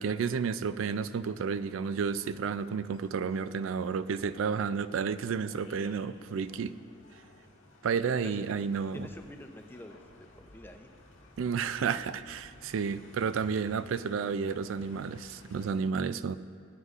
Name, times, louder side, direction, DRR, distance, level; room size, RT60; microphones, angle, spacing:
voice 1, 0.0-6.8 7.8-9.1 11.4-16.4, right 6 dB, 85° right, 14 dB, 0.4 m, -31 dB
sound 1, 0.6-15.7, left 1 dB, 85° left, 1.7 m, -56 dB
voice 2, 8.2-8.7 8.9-10.9, left 1 dB, 10° left, 5 dB, 0.6 m, -48 dB
20.0 x 9.6 x 2.5 m, 2.3 s
head